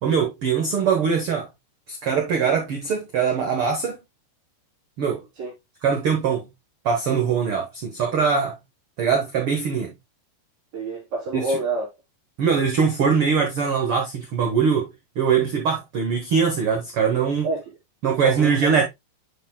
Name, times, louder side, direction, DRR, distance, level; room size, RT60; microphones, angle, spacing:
voice 1, 0.0-1.5 1.9-4.0 5.0-5.2 5.8-6.5 6.8-8.6 9.0-9.9 11.3-11.5 12.4-17.5 18.0-18.9, right 6 dB, 80° right, 1.2 m, -22 dB
voice 2, 10.7-11.9 17.4-17.6 18.1-18.7, right 2 dB, 50° right, 4.4 m, -27 dB
9.3 x 5.9 x 2.2 m
omnidirectional pair, 4.3 m